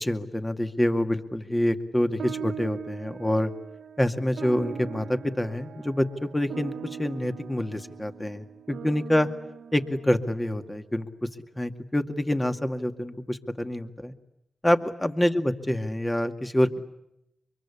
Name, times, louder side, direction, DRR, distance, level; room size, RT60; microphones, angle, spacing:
voice 1, 0.0-3.5 4.0-9.3 9.7-11.3 11.6-14.1 14.6-16.7, left 1 dB, 15° left, 8 dB, 2.2 m, -26 dB
sound 1, 2.2-10.9, right 8 dB, 80° right, 1.0 m, -41 dB
24.5 x 23.0 x 9.9 m, 0.83 s
cardioid pair, 50°, 0 cm